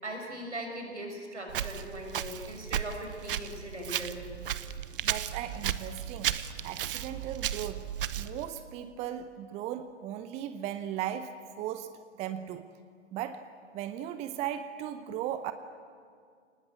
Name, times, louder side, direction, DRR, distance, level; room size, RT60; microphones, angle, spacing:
voice 1, 0.0-4.2, right 1 dB, 80° right, 2 dB, 6.2 m, -40 dB
Walk footsteps, 1.5-8.5, right 10 dB, 50° right, 1.0 m, -35 dB
voice 2, 5.0-6.4 6.6-7.9 8.2-11.9 12.2-12.7 13.1-13.4 13.7-15.5, right 11 dB, 20° right, 11 dB, 0.8 m, -37 dB
29.0 x 19.5 x 8.2 m, 2.1 s
figure-of-eight pair, 115°, 35 cm